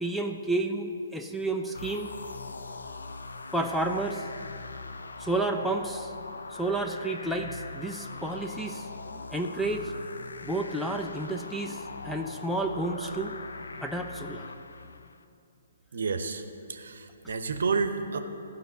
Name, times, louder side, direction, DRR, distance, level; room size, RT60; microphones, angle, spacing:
voice 1, 0.0-2.1 3.5-4.2 5.2-6.1 6.5-8.9 9.3-9.9 10.4-11.8 12.0-13.4 13.8-14.5, right 2 dB, ahead, 3 dB, 0.5 m, -31 dB
sound 1, 1.7-15.2, left 3 dB, 75° left, 0.5 m, -41 dB
voice 2, 15.9-16.4 16.7-18.2, right 5 dB, 65° right, 8 dB, 0.9 m, -30 dB
15.0 x 5.6 x 6.6 m, 2.8 s
figure-of-eight pair, 130°, 0 cm